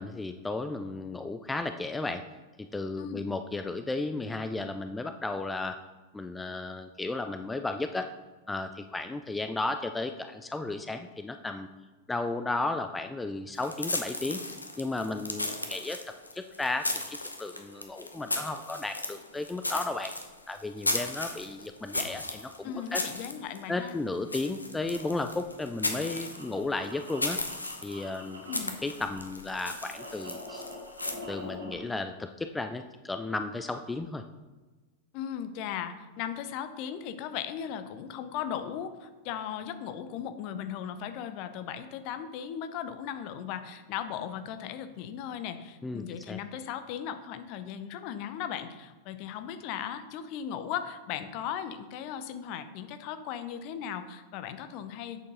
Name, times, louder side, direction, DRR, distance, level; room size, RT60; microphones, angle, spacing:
voice 1, 0.0-2.2 2.6-5.8 6.1-8.1 8.5-11.7 12.1-14.4 14.8-20.1 20.5-23.0 23.7-27.4 27.8-28.4 28.8-30.6 31.3-34.2 45.8-46.4, left 2 dB, 10° left, 7 dB, 0.4 m, -34 dB
sound 1, 13.5-31.1, left 2 dB, 80° left, 0.8 m, -36 dB
voice 2, 22.6-24.0 28.5-28.8 35.1-55.2, left 9 dB, 45° left, 10 dB, 0.7 m, -37 dB
sound 2, 26.2-29.2 29.4-31.7, left 1 dB, 65° right, 2.4 m, -45 dB
8.2 x 6.6 x 3.8 m, 1.3 s
figure-of-eight pair, 90°, 0 cm